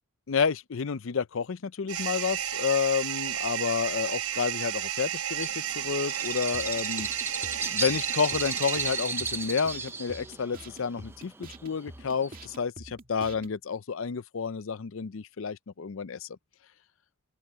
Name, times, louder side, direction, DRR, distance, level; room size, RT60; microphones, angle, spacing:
voice 1, 0.3-5.5 5.8-16.3, left 6 dB, 60° left, 0.5 m, -30 dB
sound 1, 1.9-9.6, right 10 dB, 85° right, 3.3 m, -33 dB
Bird, 5.4-12.6, right 3 dB, 10° right, 0.5 m, -35 dB
sound 2, 6.5-13.6, right 2 dB, 40° right, 2.5 m, -47 dB
open air
head